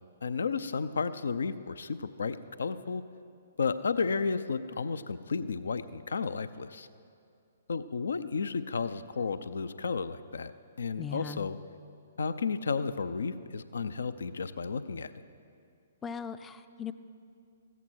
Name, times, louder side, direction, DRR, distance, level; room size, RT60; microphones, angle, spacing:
voice 1, 0.2-3.0 3.6-6.9 7.7-10.5 10.8-11.6 12.2-15.1, left 5 dB, 65° left, 14 dB, 0.6 m, -32 dB
voice 2, 11.0-11.5 16.0-16.9, left 7 dB, 15° left, 11 dB, 0.5 m, -38 dB
15.0 x 14.0 x 4.6 m, 2.4 s
figure-of-eight pair, 125°, 0 cm